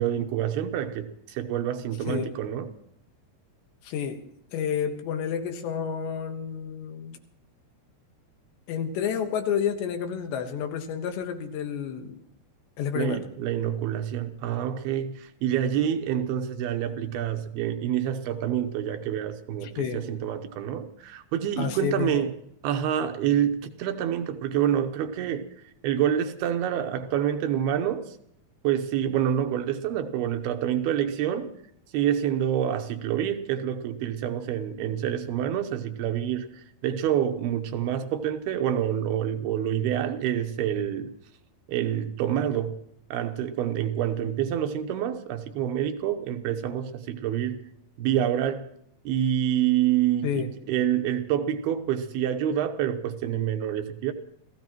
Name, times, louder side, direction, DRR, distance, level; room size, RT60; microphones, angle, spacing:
voice 1, 0.0-2.7 13.0-22.3 22.6-25.5 25.8-28.2 28.6-31.5 31.9-41.1 41.7-42.8 43.1-47.6 48.0-48.6 49.0-54.1, right 10 dB, 75° right, 2.7 m, -27 dB
voice 2, 3.8-4.2 4.5-7.2 8.7-12.2 12.8-13.3 19.6-20.0 21.6-22.2 50.2-50.5, left 8 dB, 90° left, 3.6 m, -30 dB
28.5 x 16.0 x 3.0 m
omnidirectional pair, 4.8 m